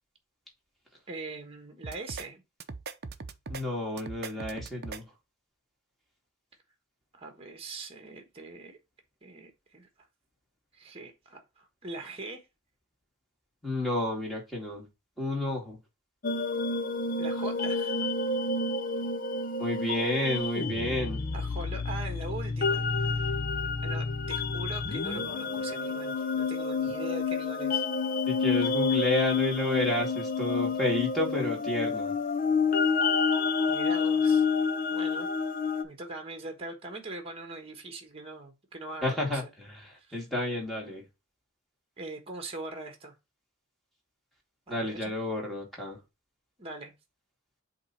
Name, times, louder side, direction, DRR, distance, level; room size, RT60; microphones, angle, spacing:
voice 1, 1.1-2.4 7.1-8.8 9.2-9.9 10.7-12.5 17.2-18.0 21.3-23.3 23.6-27.8 33.7-34.4 34.9-35.3 35.8-39.4 39.9-40.1 42.0-43.1 44.7-45.2 46.6-46.9, right 2 dB, 30° right, 1.3 m, -42 dB
sound 1, 1.8-2.3 2.6-3.6 4.0-5.0, right 4 dB, 50° right, 0.7 m, -39 dB
voice 2, 3.5-5.1 13.6-14.9 15.2-15.8 19.6-21.3 28.3-32.2 39.0-41.0 44.7-46.0, left 1 dB, ahead, 2.4 m, -31 dB
sound 2, 16.2-35.8, left 4 dB, 40° left, 0.7 m, -29 dB
7.6 x 3.0 x 4.3 m
head